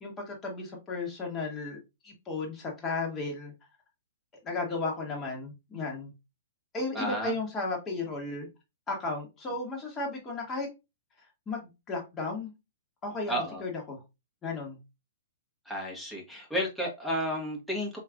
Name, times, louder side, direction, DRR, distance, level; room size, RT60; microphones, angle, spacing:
voice 1, 0.0-1.8 2.0-3.5 4.4-6.1 6.7-8.5 8.9-10.7 11.5-12.5 13.0-13.3 13.6-14.0 14.4-14.8, left 3 dB, 20° left, 1.7 m, -34 dB
voice 2, 6.9-7.3 13.3-13.6 15.6-18.0, equal, ahead, 1.5 m, -32 dB
4.5 x 3.2 x 2.5 m
hypercardioid pair, 115°, 0 cm